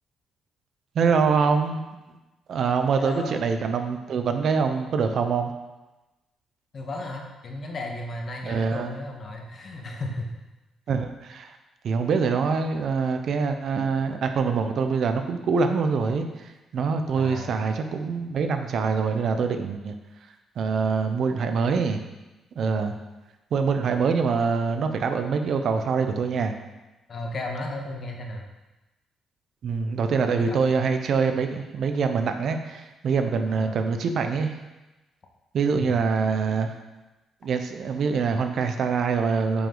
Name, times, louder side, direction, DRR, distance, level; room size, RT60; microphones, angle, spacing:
voice 1, 0.9-1.8 2.5-5.5 8.4-8.9 10.9-11.5 11.8-16.3 16.7-19.9 20.6-22.0 22.6-23.0 23.5-26.5 29.6-34.6 35.5-36.7 37.4-39.7, right 5 dB, 65° right, 6 dB, 0.8 m, -24 dB
voice 2, 3.0-3.4 6.7-10.3 17.2-17.6 27.1-28.4 30.5-30.6 33.5-33.8 35.7-35.9, left 2 dB, 45° left, 1 dB, 1.5 m, -34 dB
9.6 x 5.1 x 3.9 m, 1.1 s
cardioid pair, 90°, 0 cm